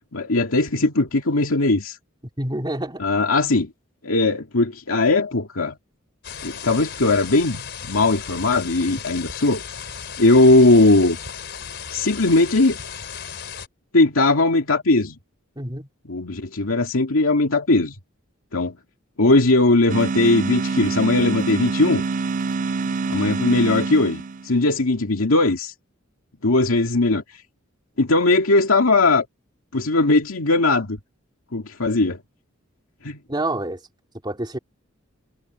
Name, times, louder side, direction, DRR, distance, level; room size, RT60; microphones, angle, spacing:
voice 1, 0.1-2.0 3.0-3.7 4.0-5.8 6.4-9.6 10.2-11.2 11.9-12.8 13.9-15.2 16.1-18.0 18.5-18.8 19.2-22.0 23.1-25.7 26.4-27.2 28.0-29.3 29.7-31.0 31.5-32.2 33.0-33.2, left 2 dB, 90° left, 2.3 m, -19 dB
voice 2, 2.4-3.0 15.6-15.9 33.3-33.8 34.2-34.6, right 1 dB, 20° right, 3.2 m, -27 dB
sound 1, 6.2-13.7, left 7 dB, 55° left, 3.8 m, -35 dB
sound 2, 19.9-24.6, right 4 dB, 40° right, 0.4 m, -26 dB
head